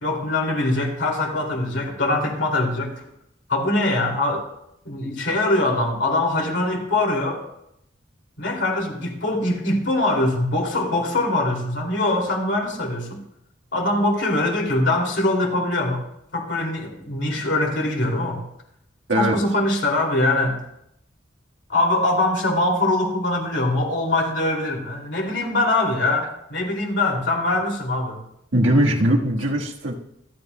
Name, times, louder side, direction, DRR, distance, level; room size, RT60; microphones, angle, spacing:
voice 1, 0.0-3.0 3.5-4.5 4.8-7.4 8.4-13.2 13.7-16.0 16.3-18.4 19.1-20.6 21.7-28.2 28.6-28.7, left 2 dB, 70° left, 0 dB, 2.6 m, -23 dB
voice 2, 28.5-30.0, right 1 dB, 85° right, 0 dB, 1.5 m, -20 dB
25.5 x 9.3 x 2.2 m, 0.78 s
head